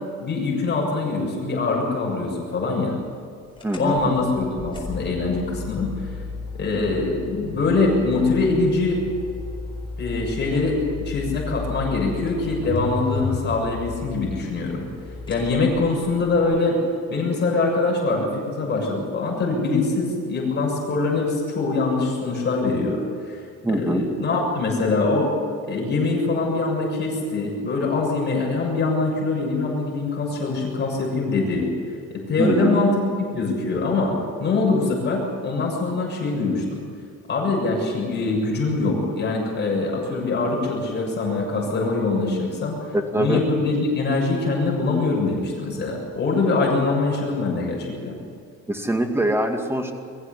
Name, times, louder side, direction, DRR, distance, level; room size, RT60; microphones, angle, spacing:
voice 1, 0.2-3.0 3.8-6.1 6.5-9.0 10.0-10.8 11.1-14.9 15.3-16.8 17.1-25.3 25.7-31.7 32.1-32.9 33.3-34.1 34.4-36.8 37.3-42.8 43.2-48.2, left 3 dB, 35° left, -1 dB, 7.0 m, -23 dB
sound 1, 3.6-16.4, left 4 dB, 15° left, 4.5 m, -34 dB
voice 2, 3.6-4.1 23.6-24.0 32.4-32.8 42.9-43.4 48.7-49.9, right 1 dB, 10° right, 4 dB, 2.2 m, -23 dB
23.0 x 15.0 x 8.4 m, 2.3 s
cardioid pair, 140°, 31 cm